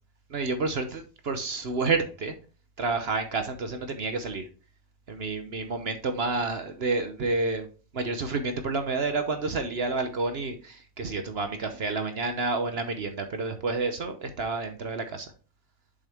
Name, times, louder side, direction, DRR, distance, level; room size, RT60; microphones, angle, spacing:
voice 1, 0.3-2.3 2.8-4.5 5.1-7.7 7.9-15.3, right 3 dB, 50° right, 7 dB, 1.0 m, -29 dB
7.0 x 5.6 x 3.5 m, 0.37 s
omnidirectional pair, 1.4 m